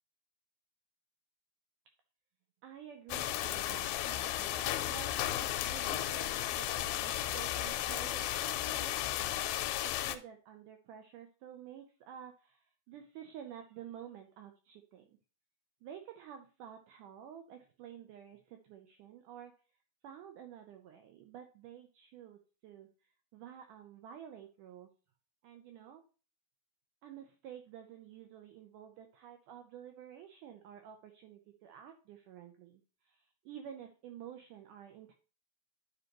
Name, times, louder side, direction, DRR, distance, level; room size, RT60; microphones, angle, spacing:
voice 1, 2.6-5.1 5.6-9.5 9.8-15.2 15.8-19.5 20.0-24.9 25.4-26.0 27.0-35.1, right 9 dB, 85° right, 6 dB, 1.8 m, -51 dB
sound 1, 3.1-10.2, left 13 dB, 80° left, 2.4 m, -34 dB
10.0 x 5.2 x 3.0 m, 0.35 s
omnidirectional pair, 4.5 m